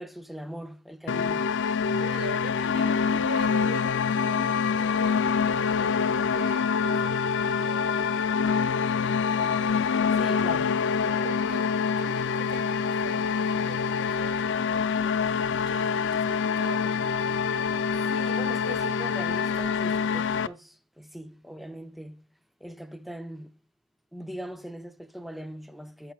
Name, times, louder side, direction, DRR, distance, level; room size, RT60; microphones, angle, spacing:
voice 1, 0.0-1.6 10.2-10.8 18.0-22.3 22.6-23.5 24.1-26.1, equal, ahead, 0.6 m, -40 dB
sound 1, 1.1-20.5, left 6 dB, 55° left, 0.5 m, -26 dB
voice 2, 2.0-5.3 6.0-8.7 9.1-10.4 11.2-14.9 15.5-17.4, right 2 dB, 45° right, 1.2 m, -44 dB
16.5 x 5.8 x 2.4 m
head